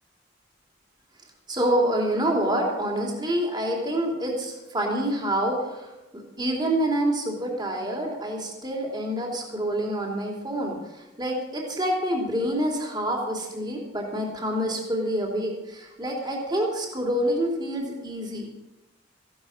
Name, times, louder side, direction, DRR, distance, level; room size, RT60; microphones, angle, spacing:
voice 1, 1.5-5.9 6.1-10.8 11.2-18.5, right 1 dB, 25° right, 0 dB, 3.2 m, -27 dB
15.0 x 12.0 x 6.1 m, 1.0 s
head